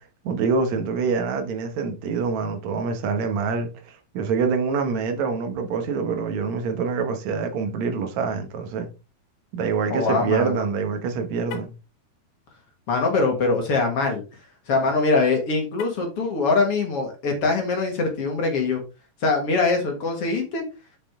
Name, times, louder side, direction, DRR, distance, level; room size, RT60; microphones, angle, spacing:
voice 1, 0.2-8.9 9.5-11.7, right 5 dB, 60° right, 2.3 m, -25 dB
voice 2, 9.9-10.6 12.9-14.2 14.7-18.8 19.2-20.6, left 3 dB, 45° left, 2.4 m, -23 dB
Car, 11.4-11.9 15.7-16.2, left 10 dB, 90° left, 2.9 m, -41 dB
7.5 x 6.5 x 3.7 m
omnidirectional pair, 4.2 m